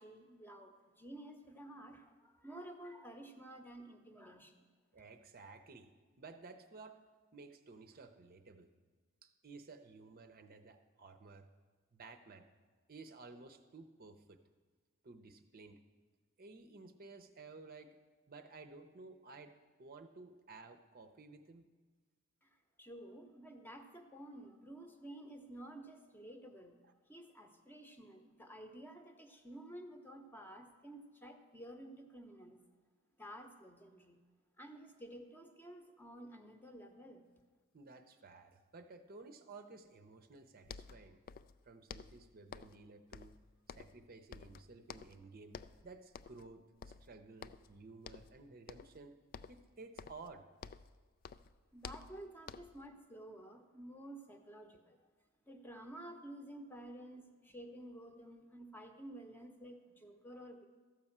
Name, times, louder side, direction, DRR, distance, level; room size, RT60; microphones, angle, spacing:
voice 1, 0.0-4.6 22.4-26.8 27.1-32.6 33.2-34.2 34.6-37.3 51.7-55.0 55.5-60.7, right 1 dB, 10° left, 5 dB, 0.8 m, -52 dB
voice 2, 4.9-5.9 6.2-7.0 7.3-8.7 9.2-11.5 11.9-12.5 12.9-14.4 15.0-15.8 16.4-18.0 18.3-19.5 19.8-21.6 37.7-41.2 41.7-43.3 43.8-49.1 49.5-50.5, right 3 dB, 45° right, 6 dB, 0.7 m, -54 dB
sound 1, 40.4-40.5 40.6-41.6 41.9-42.8 43.1-44.1 44.3-45.2 45.5-45.8 46.1-46.5 46.8-47.7 48.0-48.4 48.7-49.0 49.3-51.0 51.2-52.9, left 6 dB, 45° left, 0.3 m, -51 dB
13.0 x 5.5 x 7.2 m, 1.4 s
head